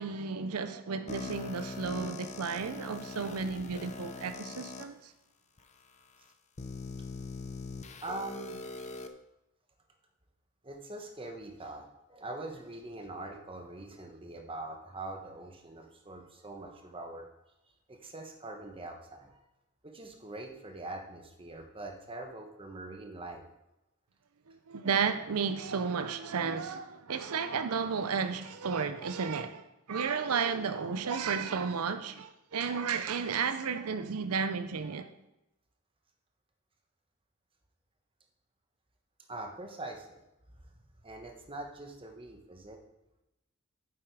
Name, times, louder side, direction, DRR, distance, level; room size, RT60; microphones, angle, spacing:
voice 1, 0.0-5.1 24.5-35.1, right 5 dB, 90° right, 0.6 m, -33 dB
sound 1, 1.1-4.8 5.6-5.7 6.6-9.1, left 3 dB, 30° left, 0.6 m, -42 dB
voice 2, 8.0-8.6 10.6-17.3 17.9-19.4 19.8-23.4 39.3-40.2 40.5-40.6 41.0-42.8, right 2 dB, 25° right, 1.2 m, -43 dB
9.5 x 7.4 x 4.8 m
head